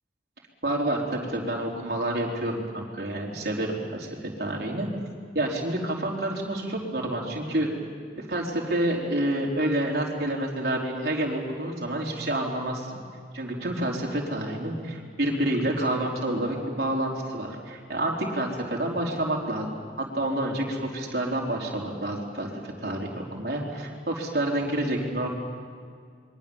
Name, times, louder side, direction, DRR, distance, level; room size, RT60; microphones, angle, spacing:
voice 1, 0.6-4.1 4.4-4.9 5.3-7.7 8.2-13.0 13.3-19.7 20.0-22.5 22.8-25.3, right 1 dB, 55° right, -2 dB, 4.5 m, -28 dB
27.5 x 23.5 x 7.4 m, 2.1 s
head